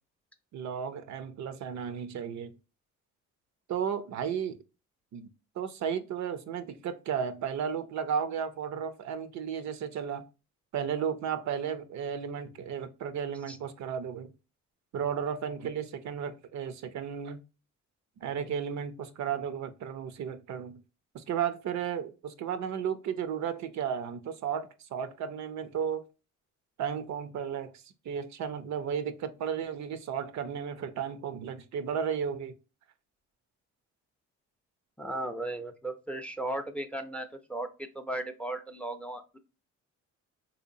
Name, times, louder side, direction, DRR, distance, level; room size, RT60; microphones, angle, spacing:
voice 1, 0.5-2.5 3.7-4.6 5.1-5.3 5.6-10.2 10.7-14.3 14.9-17.4 18.2-20.8 21.1-26.0 26.8-32.6, right 7 dB, 65° right, 0.6 m, -34 dB
voice 2, 35.0-39.4, right 1 dB, 5° left, 0.5 m, -36 dB
3.6 x 2.8 x 2.6 m
cardioid pair, 90°, 30 cm